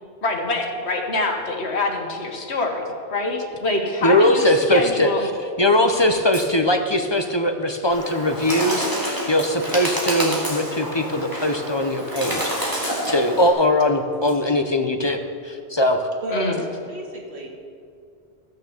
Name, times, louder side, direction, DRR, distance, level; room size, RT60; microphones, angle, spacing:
voice 1, 0.2-2.8 3.1-5.3 16.3-16.6, left 2 dB, 85° left, 2 dB, 1.8 m, -25 dB
voice 2, 4.0-5.1 5.6-16.0, left 1 dB, 30° left, 6 dB, 0.7 m, -20 dB
sound 1, 6.3-6.5 7.7-7.8 8.2-8.3 9.4-10.2 10.5-11.0 12.1-13.1 14.1-14.3, right 1 dB, 40° right, 4.1 m, -39 dB
Bird, 7.9-13.5, equal, 20° right, 2.5 m, -28 dB
voice 3, 16.2-17.5, right 2 dB, 75° right, 0 dB, 2.1 m, -31 dB
15.0 x 6.6 x 7.2 m, 2.4 s
omnidirectional pair, 1.1 m